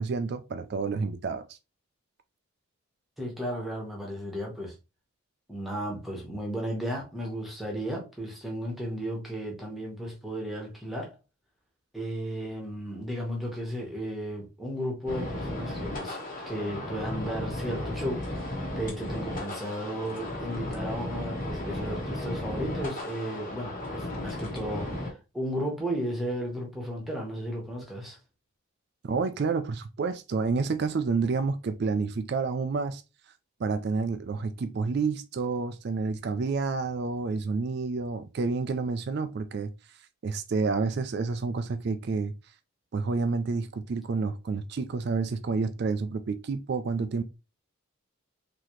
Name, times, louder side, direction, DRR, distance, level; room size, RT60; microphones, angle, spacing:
voice 1, 0.0-1.6 29.0-33.0 33.6-39.7 40.2-42.3 42.9-47.2, right 4 dB, 50° right, 0.3 m, -29 dB
voice 2, 3.2-4.7 5.5-11.1 11.9-16.2 16.5-28.2, equal, ahead, 1.1 m, -34 dB
sound 1, 15.1-25.1, left 1 dB, 40° left, 1.2 m, -35 dB
4.0 x 2.8 x 3.1 m
head